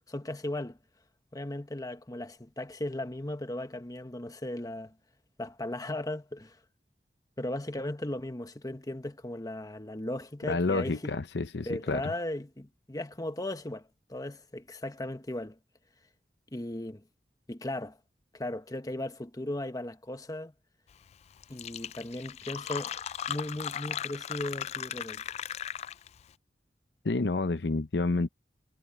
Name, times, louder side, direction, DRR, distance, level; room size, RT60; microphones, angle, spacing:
voice 1, 0.1-0.8 1.3-4.9 5.4-6.6 7.4-11.1 11.7-15.6 16.5-17.0 17.5-18.0 18.3-20.5 21.5-23.0 23.3-25.2, left 1 dB, 20° left, 1.2 m, -37 dB
voice 2, 10.5-12.1 27.0-28.3, left 3 dB, 70° left, 0.7 m, -29 dB
Fill (with liquid), 21.1-21.2 21.4-26.2, left 9 dB, 40° left, 0.3 m, -37 dB
head